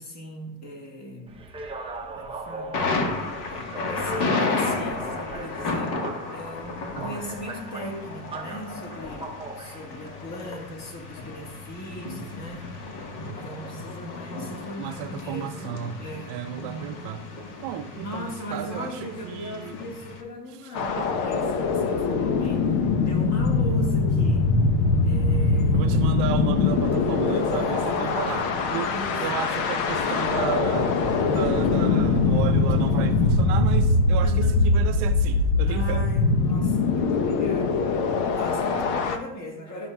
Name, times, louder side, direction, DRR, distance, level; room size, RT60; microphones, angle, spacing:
voice 1, 0.0-1.4 2.1-2.9 3.4-12.9 13.2-15.7 16.0-17.1 18.0-22.8 23.0-24.5 25.0-25.9 27.3-29.5 31.6-31.9 34.2-34.7 35.6-39.9, equal, 35° left, 1.7 m, -38 dB
sound 1, 1.3-13.1, right 2 dB, 10° right, 0.7 m, -40 dB
Thunder, 2.7-20.2, left 3 dB, 55° left, 1.5 m, -33 dB
voice 2, 14.8-16.0 16.3-17.2 17.6-19.7 21.0-21.1 25.7-28.4 28.7-31.0 31.2-36.0 36.6-36.8, right 10 dB, 55° right, 0.6 m, -33 dB
sound 2, 20.7-39.2, left 3 dB, 70° left, 1.0 m, -22 dB
11.0 x 6.3 x 2.3 m
supercardioid pair, 115°, 49 cm